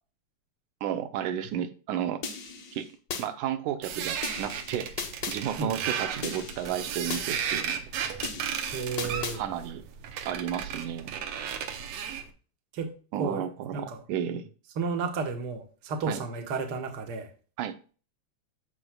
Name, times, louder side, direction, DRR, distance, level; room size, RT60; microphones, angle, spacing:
voice 1, 0.8-2.2 2.7-2.9 3.2-4.9 5.3-7.9 9.3-9.8 10.3-11.2 13.1-14.4 16.1-16.2 17.6-17.8, right 10 dB, 85° right, 2.2 m, -32 dB
sound 1, 2.2-3.3 4.2-5.4 6.2-7.3 8.2-9.4, left 5 dB, 50° left, 1.4 m, -37 dB
sound 2, 3.8-12.3, right 8 dB, 70° right, 1.7 m, -34 dB
voice 2, 8.7-9.4 12.7-12.9 13.2-13.5 13.7-14.0 14.8-17.3, right 4 dB, 50° right, 1.3 m, -32 dB
15.0 x 5.0 x 2.3 m
omnidirectional pair, 3.4 m